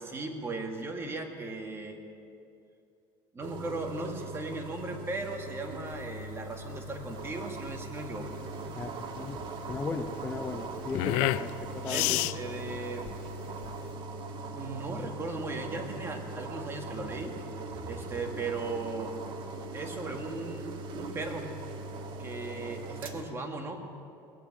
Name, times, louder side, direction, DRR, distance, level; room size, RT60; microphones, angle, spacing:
voice 1, 0.0-2.0 3.3-8.4 11.9-13.1 14.5-17.4 17.7-19.1 19.7-21.5 22.2-23.8, right 3 dB, 25° right, 3 dB, 1.9 m, -37 dB
sound 1, 3.4-23.2, right 3 dB, 50° right, 1.3 m, -40 dB
sound 2, 5.9-13.9, left 19 dB, 75° left, 0.4 m, -33 dB
voice 2, 8.8-9.4 9.7-12.2, left 4 dB, 20° left, 5 dB, 0.8 m, -36 dB
19.0 x 8.2 x 8.6 m, 2.6 s
supercardioid pair, 115°, 10 cm